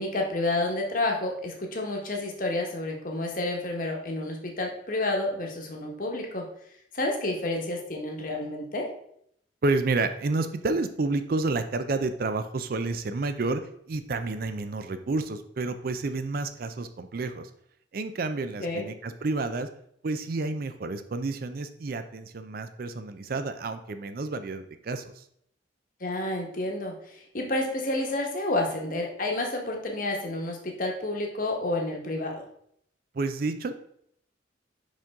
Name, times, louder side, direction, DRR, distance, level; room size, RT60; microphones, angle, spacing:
voice 1, 0.0-6.4 6.9-8.9 18.6-18.9 26.0-32.3, left 2 dB, 45° left, 1 dB, 1.2 m, -30 dB
voice 2, 9.6-13.6 13.9-17.5 17.9-19.7 20.0-25.2 33.1-33.7, right 3 dB, 50° right, 10 dB, 0.4 m, -30 dB
5.3 x 5.2 x 3.5 m, 0.69 s
head